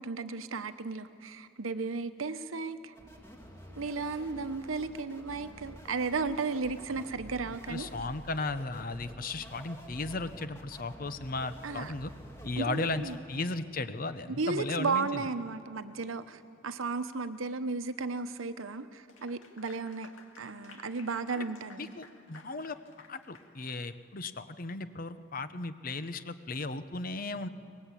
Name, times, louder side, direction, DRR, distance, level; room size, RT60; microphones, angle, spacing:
voice 1, 0.0-2.9 3.8-7.9 11.6-11.9 12.6-13.2 14.4-20.1 20.4-21.9, right 4 dB, 90° right, 11 dB, 0.9 m, -34 dB
sound 1, 3.0-13.2, equal, 15° left, 2.4 m, -49 dB
voice 2, 7.7-12.1 12.4-13.0 13.3-15.2 21.3-21.4 21.8-22.8 23.1-27.5, left 3 dB, 45° left, 12 dB, 0.8 m, -36 dB
Clapping / Applause, 19.0-23.8, left 4 dB, 75° left, 2.3 m, -55 dB
23.5 x 20.0 x 8.4 m, 2.4 s
head